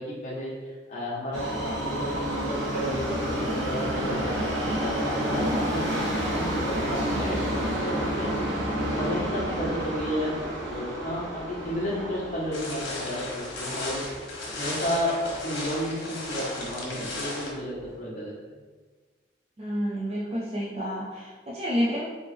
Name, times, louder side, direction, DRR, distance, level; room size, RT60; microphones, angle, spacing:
voice 1, 0.0-8.3 8.6-14.3 14.6-18.3, equal, 40° left, -7 dB, 1.3 m, -32 dB
Subway metro underground, 1.3-15.4 15.8-15.9 16.7-16.8 17.1-17.2 17.8-17.9, equal, 90° right, 1.1 m, -30 dB
sound 1, 12.5-17.5, left 2 dB, 85° left, 1.2 m, -35 dB
voice 2, 19.6-22.0, equal, 35° right, -6 dB, 0.5 m, -29 dB
3.8 x 3.4 x 3.4 m, 1.4 s
head